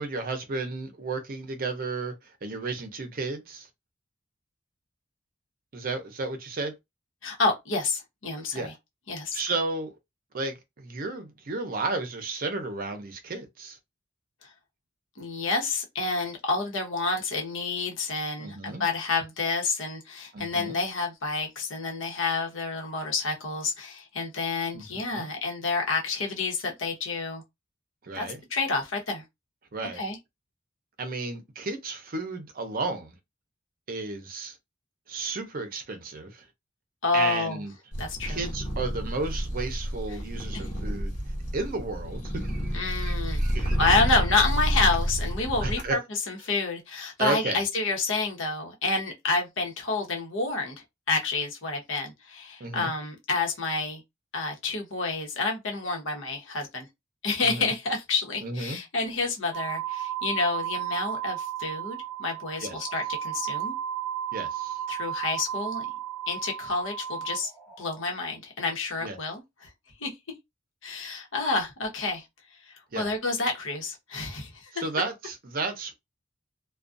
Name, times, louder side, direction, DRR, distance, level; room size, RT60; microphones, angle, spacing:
voice 1, 0.0-3.7 5.7-6.8 8.5-8.7 9.3-10.0 10.3-13.8 18.4-18.8 20.3-20.8 24.7-25.3 28.0-28.4 29.7-30.0 31.0-33.2 33.9-34.6 35.1-36.4 37.1-37.7 38.3-41.1 41.5-43.9 45.6-46.0 47.2-47.6 52.6-52.9 57.4-57.7 58.4-58.8 62.6-62.8 64.3-64.8 69.0-69.2 72.9-73.1 74.7-76.0, right 3 dB, 45° right, 0.6 m, -33 dB
voice 2, 7.2-8.7 9.1-9.4 14.4-14.5 15.2-27.4 28.1-28.3 28.5-29.2 29.9-30.2 37.0-37.6 38.0-38.4 42.7-43.4 43.8-54.0 54.3-56.9 57.2-63.7 64.9-65.9 66.3-67.5 67.8-69.7 70.0-70.1 70.8-72.2 72.6-74.7, left 3 dB, 80° left, 0.9 m, -29 dB
sound 1, 37.9-45.9, equal, 40° left, 1.0 m, -30 dB
sound 2, 59.5-68.0, right 10 dB, ahead, 0.8 m, -34 dB
2.4 x 2.2 x 2.5 m
head